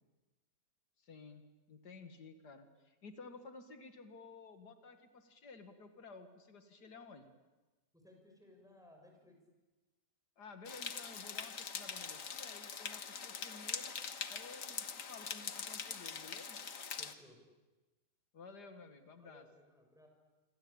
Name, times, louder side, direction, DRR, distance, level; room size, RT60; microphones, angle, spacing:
voice 1, 1.0-1.4 1.7-7.3 10.4-13.9 14.3-16.6 18.3-19.4, left 4 dB, 80° left, 7 dB, 2.4 m, -54 dB
voice 2, 7.9-9.4 17.0-17.4 19.2-20.1, left 1 dB, ahead, 2 dB, 6.9 m, -61 dB
sound 1, 10.7-17.1, left 6 dB, 55° left, 1.7 m, -43 dB
27.0 x 25.5 x 8.7 m, 1.1 s
omnidirectional pair, 1.7 m